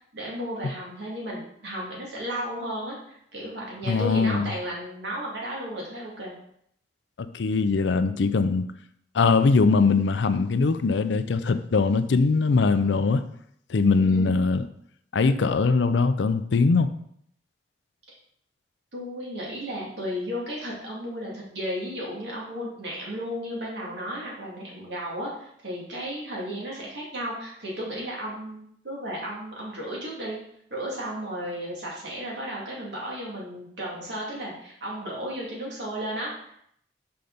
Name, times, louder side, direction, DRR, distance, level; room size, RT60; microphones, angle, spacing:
voice 1, 0.0-6.4 14.0-14.4 18.9-30.4 30.7-36.5, equal, 70° right, -4 dB, 2.4 m, -34 dB
voice 2, 3.9-4.5 7.2-8.7 9.1-13.2 13.7-14.6 15.1-16.9, left 4 dB, 80° left, 11 dB, 0.5 m, -21 dB
5.7 x 5.0 x 4.0 m, 0.69 s
head